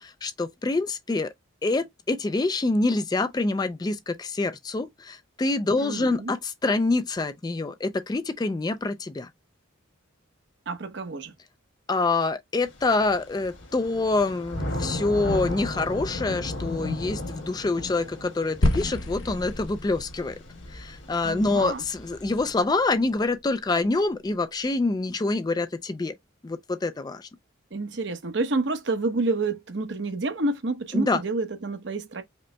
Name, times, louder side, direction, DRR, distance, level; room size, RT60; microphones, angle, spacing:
voice 1, 0.0-1.3 1.6-9.3 11.9-20.4 20.7-26.1 26.4-27.3 30.9-31.2, left 3 dB, 20° left, 0.3 m, -26 dB
voice 2, 5.8-6.3 10.7-11.3 21.2-21.8 27.7-32.2, right 3 dB, 60° right, 0.8 m, -29 dB
Thunder / Rain, 12.7-22.6, left 1 dB, 65° left, 1.6 m, -36 dB
sound 1, 18.6-23.0, left 1 dB, 80° left, 0.9 m, -30 dB
5.1 x 2.0 x 3.2 m
head